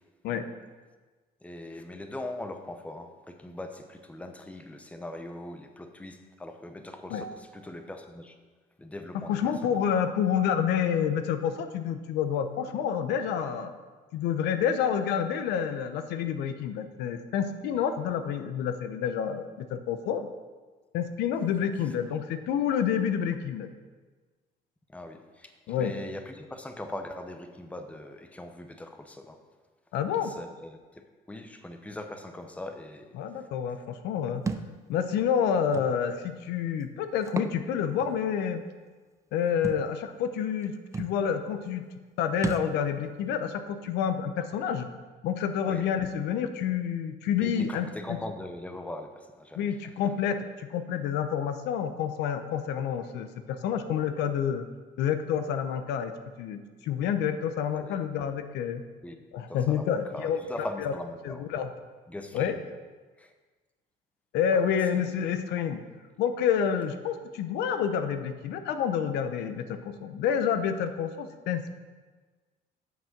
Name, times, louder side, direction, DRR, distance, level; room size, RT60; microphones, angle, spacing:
voice 1, 1.4-8.4 8.8-9.8 17.7-17.8 24.9-29.4 30.2-33.1 45.7-45.9 47.4-49.7 57.7-58.0 59.0-61.5 62.1-62.5 63.2-63.3 64.5-65.3, left 1 dB, 10° left, 6 dB, 0.8 m, -41 dB
voice 2, 9.3-13.7 14.1-20.3 20.9-23.7 25.7-26.0 29.9-30.3 33.1-34.4 34.9-38.6 39.3-41.8 42.2-44.9 45.2-48.2 49.6-54.7 55.0-56.1 56.4-58.8 59.3-60.4 60.8-60.9 61.2-61.7 62.3-62.5 64.3-65.8 66.2-71.7, left 8 dB, 85° left, 9 dB, 0.7 m, -28 dB
Thump thud, 34.5-34.7 35.7-35.9 37.2-37.6 38.0-38.1 39.6-39.8 40.6-40.7 40.9-41.2 42.4-42.7, right 4 dB, 20° right, 0.5 m, -32 dB
7.3 x 6.1 x 5.9 m, 1.4 s
cardioid pair, 110°, 17 cm